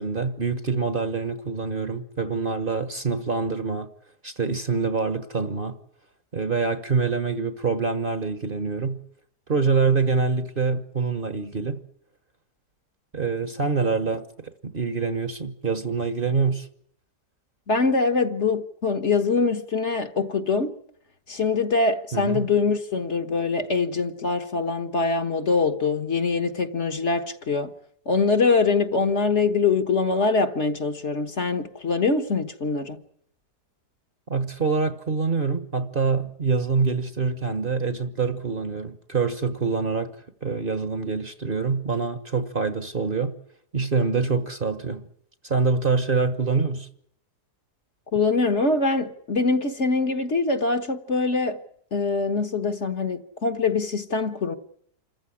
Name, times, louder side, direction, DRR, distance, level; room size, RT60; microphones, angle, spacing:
voice 1, 0.0-3.9 4.2-5.8 6.3-9.0 9.5-11.8 13.1-16.7 22.1-22.5 34.3-40.1 40.4-43.3 43.7-45.1 45.4-46.9, right 4 dB, 35° right, 1.3 m, -25 dB
voice 2, 17.7-20.7 21.3-27.7 28.1-33.0 48.1-51.6 51.9-54.6, left 4 dB, 50° left, 1.6 m, -23 dB
27.0 x 15.0 x 10.0 m
omnidirectional pair, 1.7 m